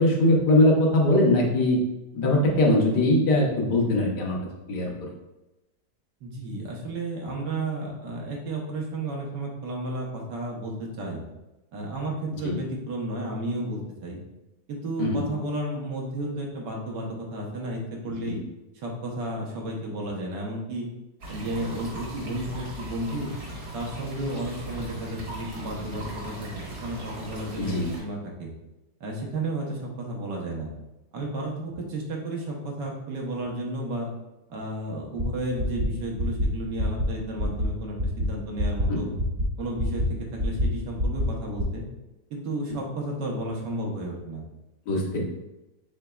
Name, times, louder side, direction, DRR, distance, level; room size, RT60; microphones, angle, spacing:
voice 1, 0.0-1.8 2.1-4.4 4.7-5.1 12.4-12.5 15.0-15.2 18.2-18.4 27.6-27.9 38.9-39.2 44.9-45.2, left 1 dB, 70° left, -1 dB, 1.4 m, -21 dB
voice 2, 6.2-11.2 11.7-14.2 14.7-18.4 18.7-20.9 21.3-23.3 23.7-28.5 29.0-30.7 31.1-34.1 34.5-39.1 39.6-41.8 42.3-44.4, right 1 dB, 75° right, -1 dB, 1.6 m, -32 dB
sound 1, 21.2-28.0, right 1 dB, 55° right, 1.6 m, -38 dB
sound 2, 35.2-35.3 35.6-35.9 36.2-36.5 36.8-37.1 37.4-37.7 38.0-38.3 38.6-38.8 39.2-39.5 39.8-40.1 40.4-40.7 41.0-41.3 41.6-41.7, equal, 25° right, 0.5 m, -26 dB
5.4 x 3.9 x 2.3 m, 0.99 s
omnidirectional pair, 1.9 m